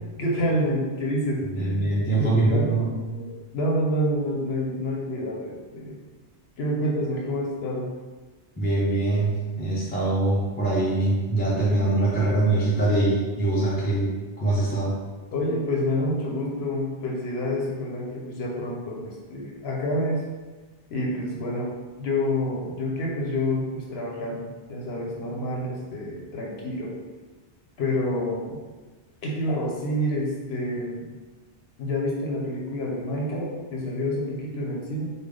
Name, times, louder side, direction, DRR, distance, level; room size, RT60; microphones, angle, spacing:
voice 1, 0.2-2.7 3.1-6.0 6.6-7.9 15.3-20.2 20.9-21.7 22.0-26.9 27.8-28.6 29.2-31.1 31.8-35.1, left 1 dB, 70° left, -2 dB, 0.9 m, -28 dB
voice 2, 1.5-3.0 8.6-14.9, right 2 dB, 10° left, -6 dB, 0.5 m, -23 dB
3.3 x 2.2 x 3.7 m, 1.3 s
omnidirectional pair, 1.1 m